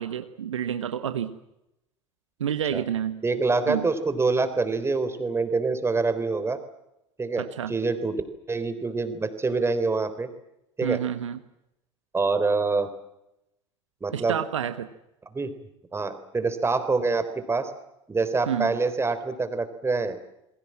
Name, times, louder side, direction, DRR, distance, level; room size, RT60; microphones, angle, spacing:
voice 1, 0.0-1.4 2.4-3.2 3.7-3.8 7.4-7.8 10.8-11.4 14.1-14.9 18.5-18.7, right 9 dB, 70° right, 11 dB, 1.4 m, -29 dB
voice 2, 3.2-6.6 7.2-8.2 8.5-10.3 10.8-11.0 12.1-12.9 14.0-14.4 15.3-15.5 15.9-17.7 18.1-20.2, right 3 dB, 15° right, 11 dB, 3.7 m, -25 dB
27.5 x 22.5 x 7.5 m, 0.86 s
figure-of-eight pair, 70°, 16 cm